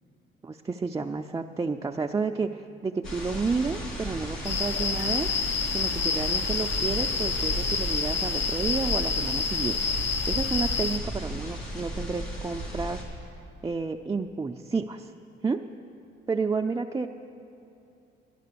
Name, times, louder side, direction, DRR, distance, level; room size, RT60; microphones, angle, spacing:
voice 1, 0.4-5.3 5.7-10.0 10.3-13.0 13.6-15.1 15.4-15.6 16.3-17.1, right 4 dB, 15° right, 2 dB, 0.4 m, -30 dB
sound 1, 3.0-13.0, equal, 80° left, 2.3 m, -35 dB
sound 2, 4.4-11.0, left 5 dB, 65° left, 0.8 m, -28 dB
11.5 x 10.0 x 6.8 m, 2.6 s
cardioid pair, 90°, 20 cm